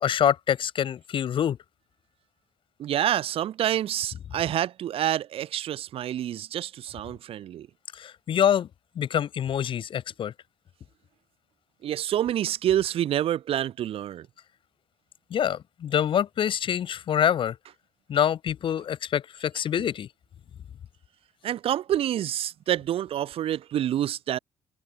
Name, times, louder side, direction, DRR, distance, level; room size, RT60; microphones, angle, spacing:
voice 1, 0.0-1.6 7.9-8.7 9.0-10.3 15.3-17.5 18.1-20.1, left 9 dB, 55° left, 1.2 m, -25 dB
voice 2, 2.8-7.7 11.8-14.3 19.8-19.9 21.4-24.4, right 11 dB, 70° right, 1.6 m, -27 dB
cardioid pair, 100°, 10 cm